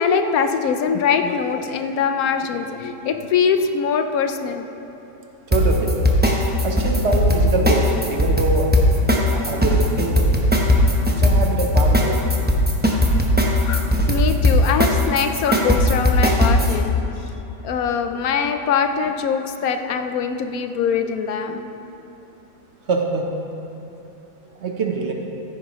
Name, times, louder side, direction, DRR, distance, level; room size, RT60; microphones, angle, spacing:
voice 1, 0.0-4.7 13.6-17.0 17.6-21.7, left 6 dB, 75° left, 7 dB, 1.0 m, -22 dB
sound 1, 5.5-16.8, left 1 dB, 10° right, 0.6 m, -17 dB
voice 2, 5.5-6.1 6.6-8.9 9.3-10.3 11.2-12.2 22.9-23.3 24.6-25.1, right 3 dB, 55° right, 2 dB, 1.0 m, -24 dB
14.5 x 9.6 x 3.0 m, 2.9 s
omnidirectional pair, 1.6 m